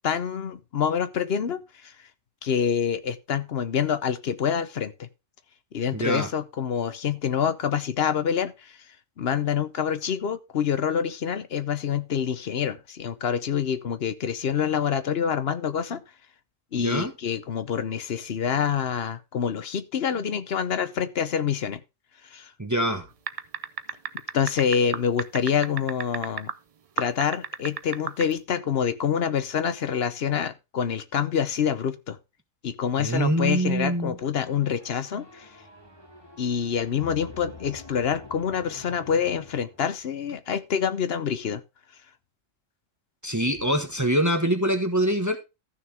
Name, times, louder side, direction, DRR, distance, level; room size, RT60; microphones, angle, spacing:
voice 1, 0.0-1.9 2.4-5.1 5.7-8.8 9.2-16.0 16.7-21.8 22.2-22.5 24.3-26.5 27.0-32.2 32.6-35.5 36.4-41.6, left 7 dB, 55° left, 0.9 m, -26 dB
voice 2, 5.9-6.3 16.8-17.1 22.6-23.1 33.0-34.1 43.2-45.4, right 1 dB, 15° right, 1.1 m, -24 dB
sound 1, 23.3-26.5 27.0-28.3, right 7 dB, 55° right, 0.4 m, -31 dB
sound 2, 34.6-40.2, left 3 dB, 20° left, 3.0 m, -47 dB
14.0 x 6.4 x 3.4 m
omnidirectional pair, 1.3 m